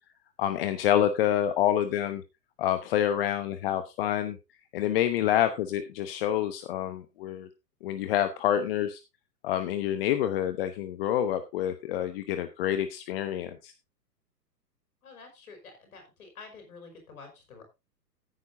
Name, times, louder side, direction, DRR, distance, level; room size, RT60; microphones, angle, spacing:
voice 1, 0.4-2.2 2.6-4.4 4.7-7.5 7.8-9.0 9.4-13.7, left 11 dB, 35° left, 10 dB, 1.0 m, -27 dB
voice 2, 15.0-17.6, left 4 dB, 60° left, 4 dB, 5.4 m, -49 dB
15.0 x 9.2 x 2.7 m, 0.25 s
figure-of-eight pair, 110°, 49 cm